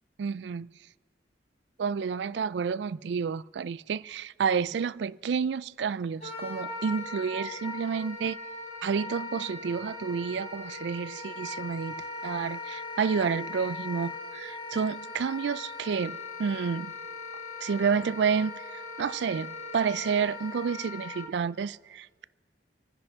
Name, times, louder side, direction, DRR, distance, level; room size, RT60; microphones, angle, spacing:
voice 1, 0.2-0.7 1.8-8.4 8.8-16.9 17.6-22.3, right 6 dB, 75° right, 0.3 m, -30 dB
Wind instrument woodwind instrument, 6.2-21.3, left 3 dB, 35° left, 2.0 m, -39 dB
27.5 x 9.7 x 3.6 m
head